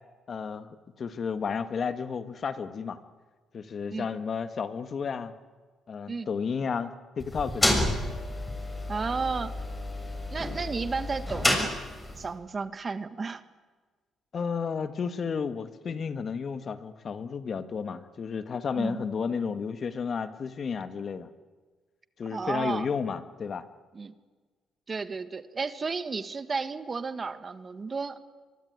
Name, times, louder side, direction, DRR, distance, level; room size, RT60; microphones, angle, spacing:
voice 1, 0.3-3.0 3.5-5.3 5.9-7.9 14.3-21.3 22.2-23.6, left 6 dB, 50° left, 11 dB, 1.7 m, -32 dB
sound 1, 7.2-12.3, left 1 dB, 15° left, 6.6 m, -30 dB
voice 2, 8.9-9.5 10.3-11.7 12.2-13.4 18.8-19.0 22.3-22.9 23.9-24.1 24.9-28.2, right 4 dB, 35° right, 12 dB, 1.6 m, -33 dB
23.5 x 23.5 x 9.4 m, 1.4 s
cardioid pair, 90°, 0 cm